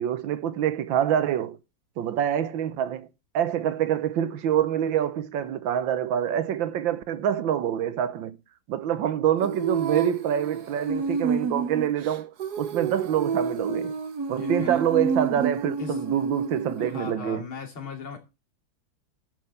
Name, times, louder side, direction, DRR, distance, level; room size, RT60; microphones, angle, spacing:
voice 1, 0.0-1.6 2.0-3.1 3.3-8.4 8.7-13.9 14.3-17.4, right 10 dB, 75° right, 1.5 m, -26 dB
Female singing, 9.4-17.1, right 5 dB, 55° right, 1.5 m, -29 dB
voice 2, 14.4-14.8 15.8-16.0 16.8-18.2, left 6 dB, 85° left, 3.6 m, -38 dB
11.0 x 6.2 x 6.9 m
omnidirectional pair, 2.2 m